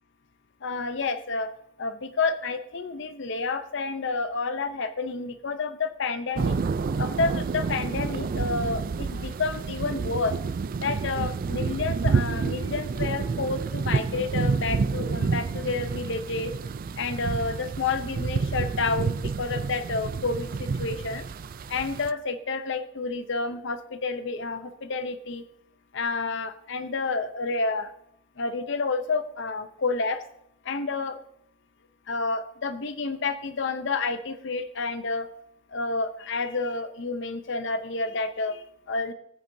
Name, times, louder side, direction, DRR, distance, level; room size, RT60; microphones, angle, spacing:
voice 1, 0.6-1.5 1.8-6.5 7.0-10.4 10.8-16.5 17.0-21.2 21.7-25.4 25.9-27.9 28.4-30.2 30.6-31.2 32.1-35.3 35.7-39.1, left 3 dB, 65° left, 10 dB, 0.7 m, -29 dB
sound 1, 6.4-22.1, right 4 dB, 45° right, 0.4 m, -29 dB
19.0 x 8.6 x 2.7 m, 0.76 s
head